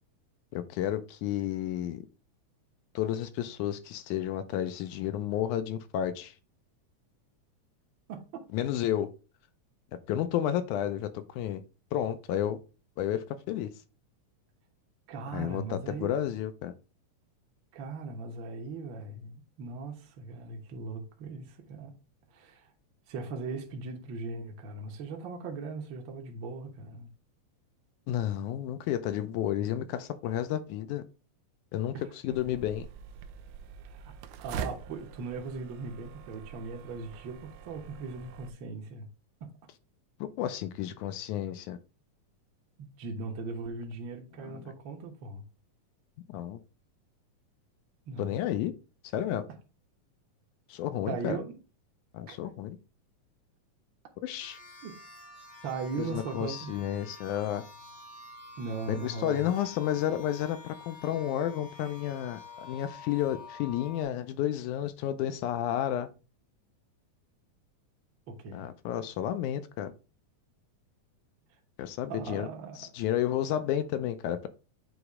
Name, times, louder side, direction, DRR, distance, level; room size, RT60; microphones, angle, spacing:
voice 1, 0.5-2.0 3.0-6.3 8.5-9.1 10.1-11.6 11.9-12.6 13.0-13.7 15.3-16.7 28.1-31.0 31.7-31.9 32.2-32.9 40.4-41.8 44.4-44.5 46.3-46.6 48.2-48.7 49.1-49.5 50.7-51.4 52.1-52.8 54.2-54.6 56.0-57.6 58.9-66.1 68.5-69.9 71.8-72.5 72.8-74.5, left 11 dB, 80° left, 2.0 m, -31 dB
voice 2, 8.1-8.5 15.1-16.1 17.7-21.9 22.3-22.7 23.1-27.1 31.9-32.1 33.8-34.1 34.4-39.1 39.4-39.5 42.8-45.4 48.1-48.4 51.1-51.5 52.3-52.4 54.8-54.9 55.6-56.8 58.6-59.5 68.3-68.7 72.1-72.9, right 4 dB, 55° right, 1.4 m, -39 dB
sound 1, 32.3-38.5, right 7 dB, 80° right, 1.9 m, -44 dB
sound 2, 54.4-64.0, left 4 dB, 60° left, 0.5 m, -49 dB
7.9 x 3.1 x 4.8 m
omnidirectional pair, 3.6 m